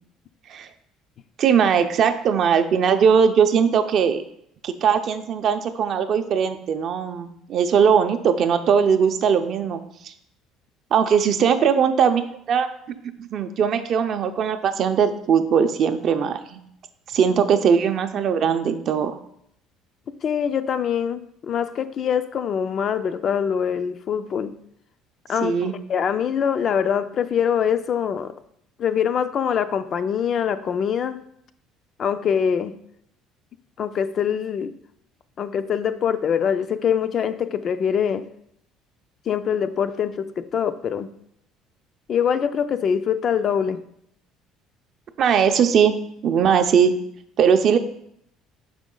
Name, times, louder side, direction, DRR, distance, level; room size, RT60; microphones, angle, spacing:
voice 1, 1.4-4.2 4.6-10.1 10.9-12.7 13.2-16.6 17.1-19.1 25.4-25.7 45.2-45.9 46.2-46.9 47.4-47.8, right 7 dB, 45° right, 8 dB, 0.5 m, -20 dB
voice 2, 20.2-24.5 25.3-25.6 25.9-28.3 28.8-31.2 32.0-32.7 33.8-34.7 35.4-38.2 39.3-41.1 42.1-43.8, left 8 dB, 40° left, 11 dB, 0.3 m, -23 dB
6.2 x 5.1 x 3.7 m, 0.72 s
cardioid pair, 145°, 0 cm